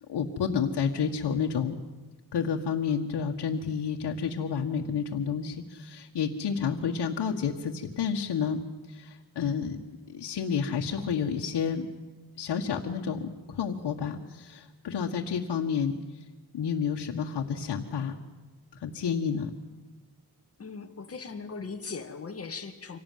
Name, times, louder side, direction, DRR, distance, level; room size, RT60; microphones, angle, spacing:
voice 1, 0.1-1.8 2.3-8.6 8.9-9.8 10.1-11.9 12.4-16.0 16.5-18.2 18.8-19.5, left 6 dB, 85° left, 0 dB, 1.8 m, -30 dB
voice 2, 20.6-23.0, left 4 dB, 35° left, 6 dB, 2.2 m, -39 dB
26.0 x 17.5 x 9.4 m, 1.3 s
wide cardioid pair, 150°, 40 cm